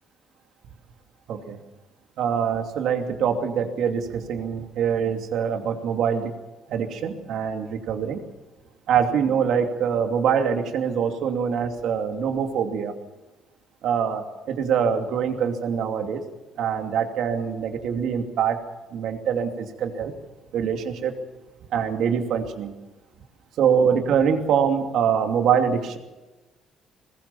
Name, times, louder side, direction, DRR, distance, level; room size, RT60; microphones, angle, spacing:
voice 1, 2.2-6.3 6.7-8.2 8.9-12.9 13.8-16.2 16.6-18.6 18.9-20.1 20.5-21.1 21.7-22.7 23.6-26.0, right 7 dB, 65° right, 6 dB, 2.7 m, -24 dB
21.5 x 20.5 x 7.2 m, 1.1 s
cardioid pair, 155°, 0 cm